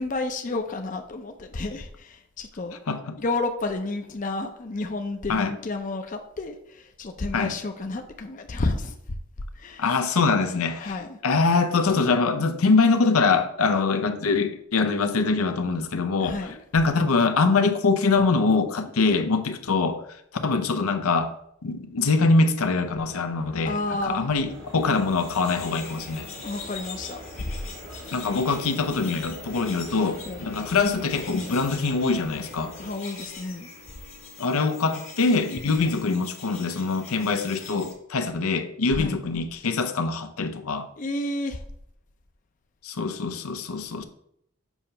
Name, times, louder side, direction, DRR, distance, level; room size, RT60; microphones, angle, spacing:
voice 1, 0.0-2.8 3.2-8.9 9.5-9.9 10.8-11.2 16.2-16.6 23.6-24.3 26.4-27.5 30.3-30.6 32.8-33.7 38.9-39.2 41.0-41.6, left 2 dB, 35° left, 0.5 m, -31 dB
voice 2, 9.8-10.9 11.2-16.4 16.7-20.0 20.4-21.3 21.6-23.8 24.1-26.3 28.1-32.7 34.4-40.9 42.8-44.0, left 4 dB, 90° left, 0.6 m, -23 dB
sound 1, 22.2-32.9, equal, 85° right, 2.6 m, -44 dB
sound 2, 24.7-37.9, left 4 dB, 70° left, 1.6 m, -43 dB
7.1 x 2.8 x 5.5 m
head